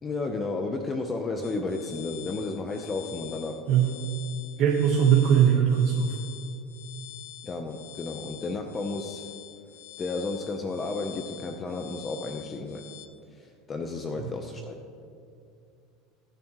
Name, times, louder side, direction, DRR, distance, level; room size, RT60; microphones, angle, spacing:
voice 1, 0.0-3.6 7.4-9.3 10.0-12.9 13.3-14.7, left 3 dB, 25° left, 4 dB, 0.8 m, -32 dB
sound 1, 1.4-13.1, left 16 dB, 85° left, 0.9 m, -46 dB
voice 2, 4.6-6.2, right 8 dB, 55° right, -1 dB, 1.3 m, -20 dB
22.0 x 7.3 x 3.1 m, 2.4 s
supercardioid pair, 120°, 0 cm